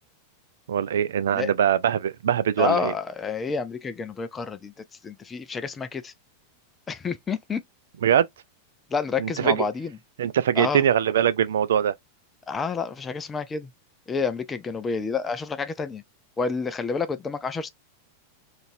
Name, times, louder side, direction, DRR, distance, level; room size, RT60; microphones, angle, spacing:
voice 1, 0.7-2.9 8.0-8.3 9.2-9.6 10.2-11.9, right 9 dB, 60° right, 0.4 m, -22 dB
voice 2, 2.6-4.7 5.0-6.1 6.9-7.6 8.9-9.9 10.6-10.8 12.5-13.7 14.1-16.0 16.4-17.7, left 5 dB, 20° left, 0.4 m, -29 dB
3.8 x 2.5 x 2.7 m
figure-of-eight pair, 90°, 0 cm